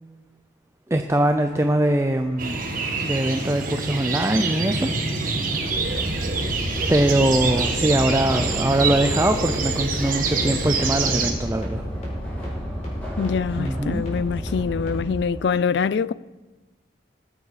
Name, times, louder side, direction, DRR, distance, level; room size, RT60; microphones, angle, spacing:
voice 1, 0.9-2.7 3.0-4.9 6.9-11.8 13.6-14.0, right 1 dB, 15° right, 0.5 m, -22 dB
Subway metro underground, 1.2-15.5, equal, 10° left, 3.0 m, -42 dB
sound 1, 2.4-11.3, right 4 dB, 45° right, 1.5 m, -26 dB
sound 2, 5.7-15.0, equal, 35° left, 4.5 m, -31 dB
voice 2, 13.2-16.1, left 6 dB, 65° left, 0.3 m, -24 dB
20.0 x 7.3 x 5.0 m
head